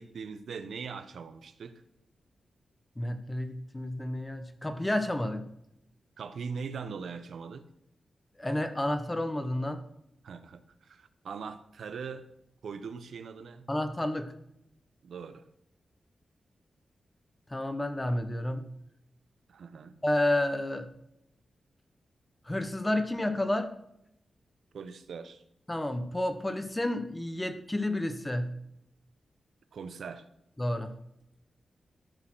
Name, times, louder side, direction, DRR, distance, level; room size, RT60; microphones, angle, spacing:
voice 1, 0.0-1.8 6.2-7.7 10.2-12.3 12.6-13.7 15.0-15.4 19.5-19.9 24.7-25.4 29.7-30.2, right 5 dB, 75° right, 10 dB, 1.1 m, -41 dB
voice 2, 3.0-5.4 8.4-9.8 13.7-14.3 17.5-18.6 20.0-20.9 22.5-23.7 25.7-28.5 30.6-31.0, left 1 dB, 10° left, 9 dB, 1.1 m, -30 dB
13.5 x 6.7 x 6.3 m, 0.81 s
wide cardioid pair, 165°, 0 cm